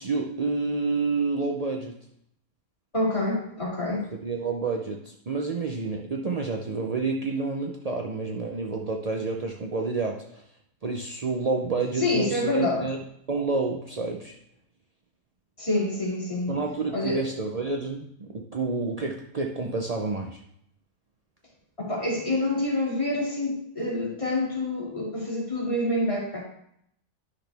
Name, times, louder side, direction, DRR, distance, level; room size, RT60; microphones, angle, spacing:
voice 1, 0.0-1.9 4.2-10.4 10.8-13.0 13.3-14.3 16.5-20.4, right 3 dB, 65° right, 1 dB, 0.3 m, -29 dB
voice 2, 2.9-4.1 12.0-12.9 15.6-16.6 16.9-17.2 21.8-26.4, left 2 dB, 20° left, -5 dB, 2.5 m, -27 dB
11.0 x 6.0 x 3.4 m, 0.72 s
omnidirectional pair, 1.6 m